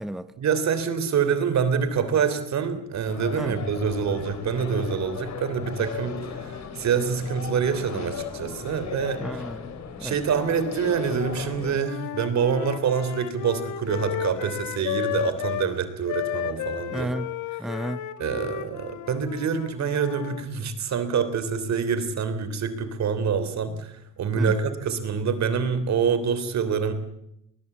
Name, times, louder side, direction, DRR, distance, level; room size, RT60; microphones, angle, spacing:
voice 1, 0.4-9.4 10.0-17.1 18.2-26.9, right 6 dB, 65° right, 3.2 m, -26 dB
sound 1, 3.1-11.8, left 6 dB, 65° left, 3.4 m, -36 dB
voice 2, 9.2-9.7 10.0-10.2 16.9-17.3 17.6-18.0 24.3-24.5, right 1 dB, ahead, 0.9 m, -32 dB
Wind instrument woodwind instrument, 11.8-15.7 16.1-20.4, left 12 dB, 85° left, 1.4 m, -33 dB
20.5 x 20.0 x 8.4 m
cardioid pair, 90°, 30 cm